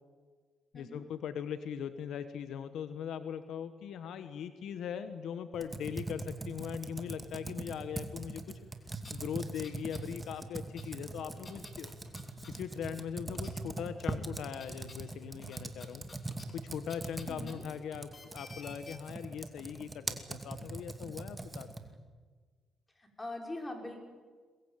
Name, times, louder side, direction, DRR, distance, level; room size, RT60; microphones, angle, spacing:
voice 1, 0.7-8.6 9.1-11.9 12.5-16.0 16.5-21.7, left 8 dB, 80° left, 11 dB, 1.3 m, -40 dB
Computer keyboard, 5.5-22.0, right 2 dB, 15° right, 2.4 m, -42 dB
sound 1, 8.6-8.7 9.0-10.1 10.3-13.0 13.3-13.9 14.2-19.0, left 4 dB, 35° left, 4.0 m, -55 dB
voice 2, 17.2-17.6 23.0-24.0, left 1 dB, 20° left, 3 dB, 5.6 m, -42 dB
23.0 x 20.5 x 9.1 m, 1.5 s
cardioid pair, 90°, 0 cm